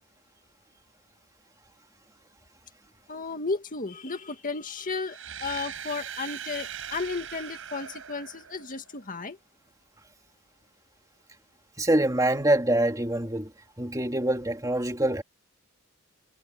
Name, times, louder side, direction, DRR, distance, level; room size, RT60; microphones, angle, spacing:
voice 1, 3.1-9.4, left 4 dB, 40° left, 2.0 m, -34 dB
sound 1, 5.0-9.0, right 8 dB, 70° right, 5.3 m, -40 dB
voice 2, 11.8-13.5 13.8-15.2, right 1 dB, 15° right, 2.6 m, -25 dB
head